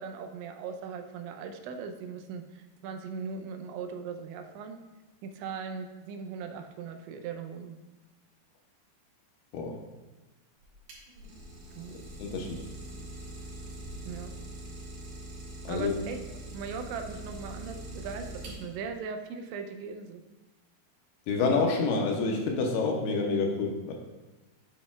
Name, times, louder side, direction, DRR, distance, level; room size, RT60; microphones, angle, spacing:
voice 1, 0.0-4.8 5.2-7.8 11.8-12.0 14.1-14.3 15.7-16.2 16.5-20.2, right 5 dB, 85° right, 5 dB, 3.0 m, -39 dB
Idling, 10.6-18.9, right 1 dB, 65° right, 3.4 m, -43 dB
voice 2, 11.9-12.6 15.6-15.9 21.3-23.9, left 4 dB, 75° left, 1 dB, 2.6 m, -28 dB
10.5 x 7.7 x 2.3 m, 1.2 s
omnidirectional pair, 5.1 m